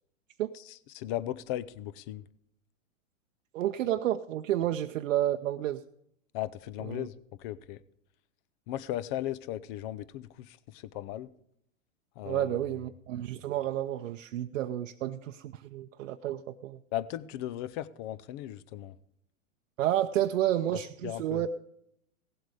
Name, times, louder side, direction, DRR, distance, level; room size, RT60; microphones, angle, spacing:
voice 1, 0.9-2.2 6.3-7.8 8.7-11.3 12.2-12.5 16.9-18.9 21.0-21.5, left 13 dB, 40° left, 0.6 m, -36 dB
voice 2, 3.5-5.8 6.8-7.1 12.2-16.8 19.8-21.6, right 12 dB, 70° right, 0.7 m, -30 dB
17.0 x 7.9 x 5.0 m
hypercardioid pair, 120°, 40 cm